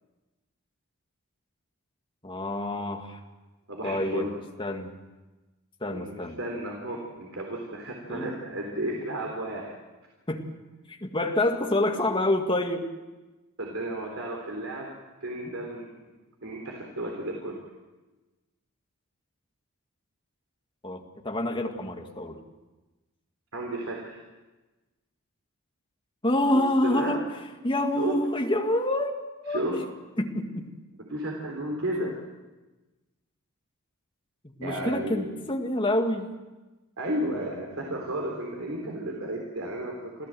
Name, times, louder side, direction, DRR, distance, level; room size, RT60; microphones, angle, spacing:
voice 1, 2.2-3.2 3.8-4.3 4.6-4.9 5.8-6.4 8.1-8.3 10.3-10.5 10.9-12.9 20.8-22.4 26.2-27.2 27.6-29.1 29.4-29.6 30.2-30.7 34.6-36.4, left 1 dB, 25° left, 3 dB, 2.0 m, -27 dB
voice 2, 3.7-4.4 5.9-9.7 13.6-14.9 15.2-15.9 16.4-17.6 23.5-24.2 26.8-27.2 28.0-28.1 29.5-29.8 31.1-32.1 34.6-35.3 37.0-40.3, right 1 dB, 65° right, 0 dB, 3.7 m, -33 dB
27.0 x 15.0 x 7.7 m, 1.2 s
head